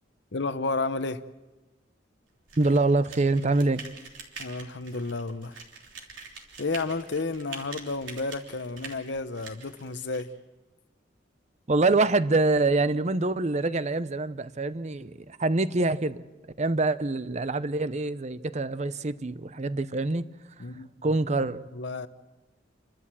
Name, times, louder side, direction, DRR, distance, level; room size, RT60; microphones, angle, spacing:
voice 1, 0.3-1.2 4.4-5.6 6.6-10.3 20.6-20.9 21.7-22.1, left 3 dB, 60° left, 0.9 m, -31 dB
sound 1, 2.5-10.2, right 5 dB, 75° right, 3.4 m, -45 dB
voice 2, 2.6-3.8 11.7-16.3 16.6-20.3 21.0-21.6, right 2 dB, 35° right, 0.6 m, -25 dB
29.0 x 12.5 x 7.5 m
head